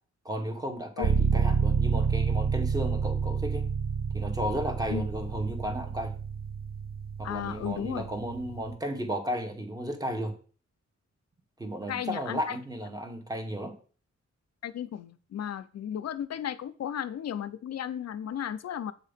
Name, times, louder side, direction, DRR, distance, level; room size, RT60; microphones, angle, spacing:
voice 1, 0.2-3.7 4.1-6.2 7.2-10.4 11.6-13.8, equal, 10° right, 4 dB, 0.9 m, -34 dB
sound 1, 1.0-8.8, right 6 dB, 35° right, 0.4 m, -29 dB
voice 2, 7.2-8.1 11.9-12.6 14.6-18.9, left 9 dB, 60° left, 13 dB, 0.5 m, -34 dB
7.8 x 2.8 x 5.0 m, 0.41 s
wide cardioid pair, 165°, 30 cm